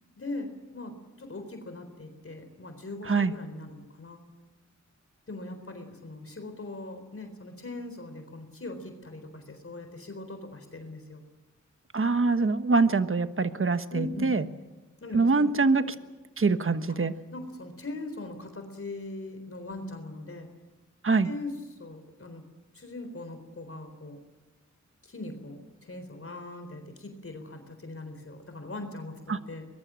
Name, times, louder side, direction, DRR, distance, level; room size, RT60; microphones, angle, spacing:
voice 1, 0.2-4.2 5.3-11.2 13.9-14.4 15.0-15.9 16.9-17.0 17.3-20.5 21.2-22.4 22.7-24.2 25.0-29.7, left 2 dB, 45° left, 6 dB, 4.0 m, -40 dB
voice 2, 11.9-14.4 15.1-15.8 16.4-17.1 21.0-21.3 29.3-29.4, right 4 dB, 45° right, 11 dB, 1.3 m, -24 dB
24.0 x 21.5 x 7.6 m, 1.2 s
wide cardioid pair, 80°, 30 cm